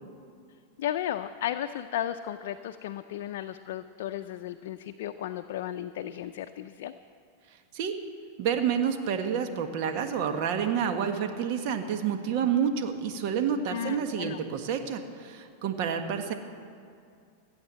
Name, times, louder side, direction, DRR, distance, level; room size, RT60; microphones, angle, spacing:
voice 1, 0.8-6.9 13.7-14.4, left 11 dB, 70° left, 7 dB, 0.5 m, -34 dB
voice 2, 8.4-16.3, right 7 dB, 55° right, 6 dB, 1.5 m, -29 dB
15.5 x 8.9 x 7.6 m, 2.3 s
hypercardioid pair, 125°, 0 cm